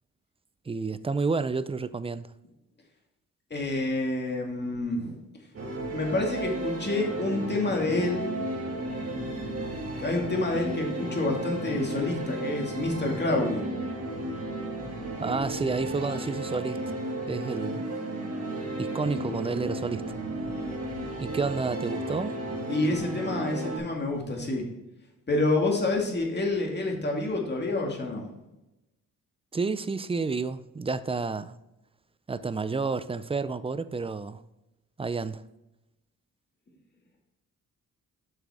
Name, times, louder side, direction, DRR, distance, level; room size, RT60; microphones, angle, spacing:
voice 1, 0.7-2.3 15.2-16.8 17.3-18.0 18.8-20.0 21.2-22.4 29.5-31.6 32.3-34.4 35.0-35.4, right 4 dB, 15° right, 0.4 m, -30 dB
voice 2, 3.5-5.2 5.9-8.4 10.0-13.6 22.7-24.7 25.3-28.3, left 2 dB, 30° left, 2.1 m, -28 dB
sound 1, 5.5-23.8, right 1 dB, 45° right, 2.2 m, -34 dB
7.6 x 6.0 x 3.6 m
cardioid pair, 90°, 35 cm